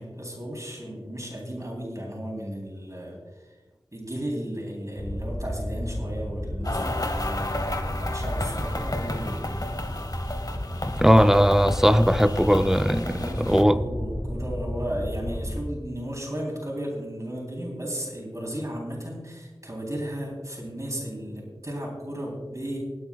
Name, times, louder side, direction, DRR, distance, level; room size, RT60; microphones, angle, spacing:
voice 1, 0.0-3.2 3.9-9.5 13.0-22.8, equal, 35° right, -2 dB, 3.5 m, -34 dB
sound 1, 5.0-15.6, equal, 70° left, 3.2 m, -32 dB
sound 2, 6.6-13.6, left 2 dB, 45° left, 1.2 m, -33 dB
voice 2, 11.0-13.8, equal, 5° right, 10 dB, 0.6 m, -19 dB
25.5 x 8.7 x 2.4 m, 1.2 s
wide cardioid pair, 45°, 9 cm